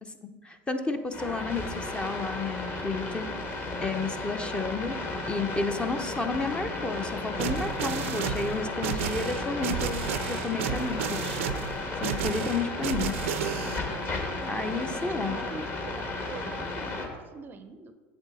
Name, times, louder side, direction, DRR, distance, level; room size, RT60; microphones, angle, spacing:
voice 1, 0.0-3.3 3.8-5.0 5.3-11.4 12.0-13.1 14.4-15.4, left 3 dB, 15° left, 7 dB, 0.6 m, -32 dB
sound 1, 1.1-17.1, left 2 dB, 35° left, 1.5 m, -34 dB
sound 2, 7.4-13.8, right 9 dB, 90° right, 0.5 m, -32 dB
voice 2, 14.6-17.9, right 4 dB, 30° right, 10 dB, 0.5 m, -44 dB
8.0 x 7.4 x 4.1 m, 1.4 s
supercardioid pair, 120°, 7 cm